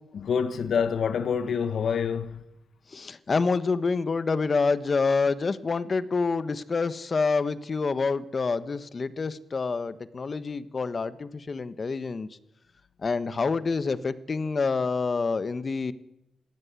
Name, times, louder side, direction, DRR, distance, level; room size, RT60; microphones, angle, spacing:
voice 1, 0.1-2.4, left 6 dB, 70° left, 1.4 m, -27 dB
voice 2, 2.9-12.3 13.0-15.9, left 4 dB, 40° left, 1.4 m, -27 dB
22.0 x 16.5 x 9.7 m
cardioid pair, 85°, 0 cm